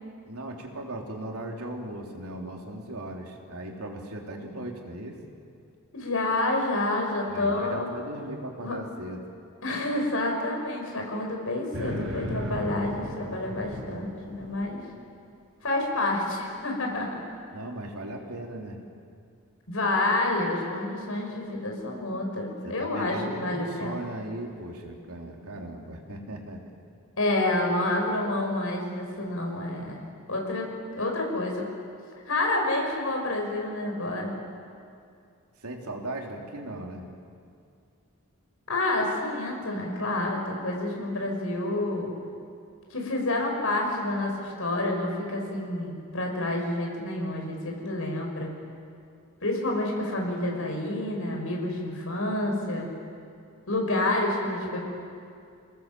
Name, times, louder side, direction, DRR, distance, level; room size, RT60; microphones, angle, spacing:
voice 1, 0.3-5.2 7.3-9.2 17.5-18.8 22.6-26.6 35.6-37.0, right 1 dB, 85° right, 0 dB, 3.3 m, -38 dB
voice 2, 5.9-7.9 8.6-8.8 9.6-14.8 15.6-17.2 19.7-24.0 27.2-30.0 30.3-31.7 32.3-34.4 38.7-42.1 42.9-48.5 49.4-52.9 53.7-54.8, left 2 dB, 65° left, 1 dB, 5.6 m, -28 dB
sound 1, 11.7-14.8, equal, 60° right, 4.4 m, -36 dB
28.0 x 18.5 x 7.6 m, 2.4 s
head